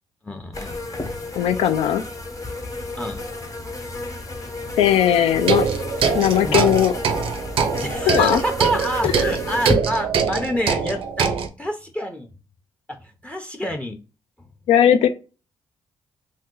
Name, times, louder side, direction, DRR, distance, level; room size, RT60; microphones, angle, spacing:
voice 1, 0.2-1.3 3.0-3.2 3.9-4.0 6.4-6.7 7.8-11.3 11.6-12.3 12.9-14.0, equal, 15° left, 0.6 m, -28 dB
sound 1, 0.5-9.7, left 2 dB, 35° left, 1.0 m, -31 dB
voice 2, 1.4-2.0 4.8-5.7 6.1-6.9 8.1-8.4 14.7-15.1, left 10 dB, 85° left, 0.4 m, -18 dB
sound 2, 5.4-11.5, right 6 dB, 70° right, 0.5 m, -23 dB
2.7 x 2.2 x 3.7 m
supercardioid pair, 55°, 10 cm